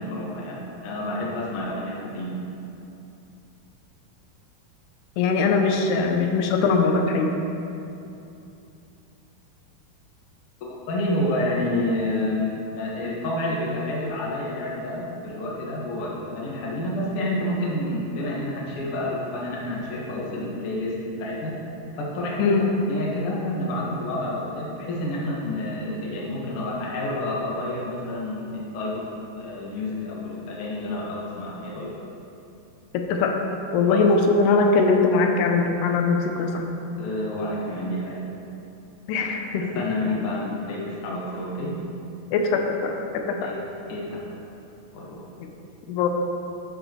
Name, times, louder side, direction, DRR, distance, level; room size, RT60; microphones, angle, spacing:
voice 1, 0.0-2.3 10.9-21.5 21.9-29.0 29.4-31.9 33.9-34.1 37.0-38.2 39.7-41.8 43.4-43.6 43.9-44.3 44.9-45.2, left 1 dB, 55° left, -5 dB, 1.5 m, -29 dB
voice 2, 5.2-7.3 22.4-22.7 32.9-33.4 33.7-36.7 39.1-39.7 42.3-43.5 45.9-46.1, left 4 dB, 85° left, 3 dB, 2.7 m, -21 dB
11.5 x 7.9 x 3.1 m, 2.8 s
omnidirectional pair, 4.7 m